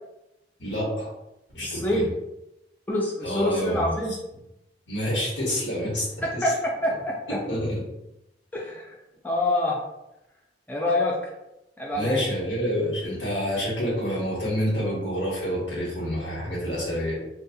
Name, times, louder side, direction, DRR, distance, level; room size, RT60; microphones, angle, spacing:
voice 1, 0.6-1.1 1.5-2.0 3.2-3.9 4.9-6.1 6.3-6.4 7.3-7.8 11.9-17.1, equal, 70° left, -5 dB, 1.2 m, -28 dB
voice 2, 1.6-2.1 2.9-4.1 6.2-7.2 8.5-9.0 9.2-9.8 10.7-11.2 11.8-12.2, left 1 dB, 10° left, -3 dB, 0.3 m, -26 dB
2.6 x 2.3 x 2.5 m, 0.90 s
head